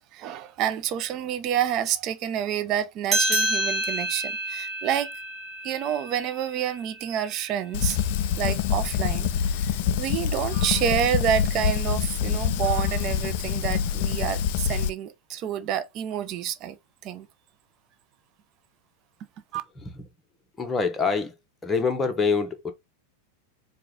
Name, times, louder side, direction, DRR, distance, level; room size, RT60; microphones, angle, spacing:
voice 1, 0.0-5.1 5.6-8.0 8.4-9.3 9.6-16.8 17.0-17.3 19.5-19.6, right 10 dB, 35° right, 0.6 m, -28 dB
sound 1, 3.1-8.0, right 1 dB, 20° right, 1.9 m, -29 dB
Fire, 7.7-14.9, left 8 dB, 50° left, 0.4 m, -26 dB
voice 2, 20.6-21.4 21.6-22.7, left 5 dB, 15° left, 1.0 m, -25 dB
4.5 x 2.4 x 3.8 m
figure-of-eight pair, 90°, 0 cm